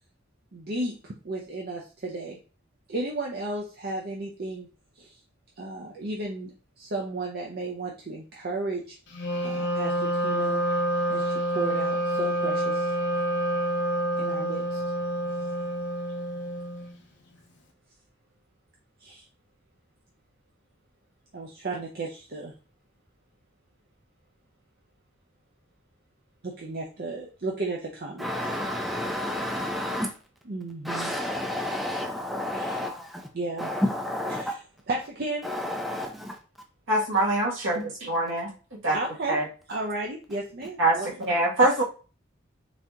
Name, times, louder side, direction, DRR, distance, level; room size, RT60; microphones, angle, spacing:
voice 1, 0.5-2.4 2.9-4.7 5.0-5.2 5.6-9.0 9.4-10.6 11.1-12.9 14.2-14.8 19.0-19.2 21.3-22.5 26.4-28.3 30.5-31.1 32.6-32.8 33.3-33.7 34.4-34.6 34.9-35.5 38.9-39.4 39.7-41.3, right 2 dB, 50° right, 0 dB, 0.6 m, -34 dB
Wind instrument woodwind instrument, 9.1-17.0, right 1 dB, 60° left, 0.9 m, -27 dB
voice 2, 28.2-30.1 30.8-33.3 33.6-34.5 35.4-36.4, left 1 dB, ahead, 2 dB, 0.4 m, -30 dB
voice 3, 36.9-38.5 38.8-39.0 39.3-39.4 40.8-41.8, right 2 dB, 70° right, -4 dB, 1.7 m, -24 dB
4.0 x 2.8 x 3.6 m, 0.36 s
head